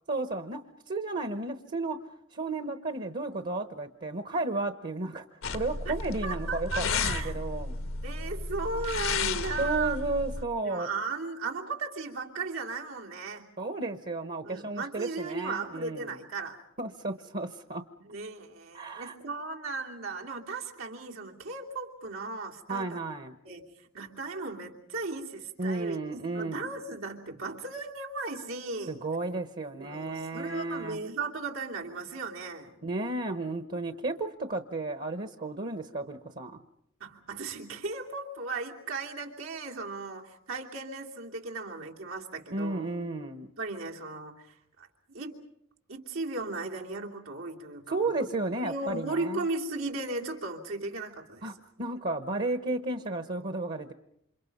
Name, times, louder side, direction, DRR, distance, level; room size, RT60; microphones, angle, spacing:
voice 1, 0.1-0.6 0.9-2.0 2.3-5.3 5.5-7.8 9.6-10.9 13.6-16.1 16.8-17.8 18.7-19.1 22.7-23.3 25.6-26.7 28.9-31.0 32.8-36.6 42.5-43.5 47.9-49.5 51.4-53.9, right 2 dB, 45° right, 9 dB, 1.1 m, -33 dB
sound 1, 5.4-10.4, left 4 dB, 90° left, 1.4 m, -33 dB
voice 2, 6.2-7.3 8.0-10.0 10.6-13.5 14.4-16.6 18.0-23.0 23.4-29.0 29.8-32.7 37.0-42.9 43.6-45.3 45.9-48.3 48.6-51.5, right 3 dB, 90° right, 0 dB, 3.0 m, -36 dB
28.5 x 27.0 x 5.4 m, 0.74 s
head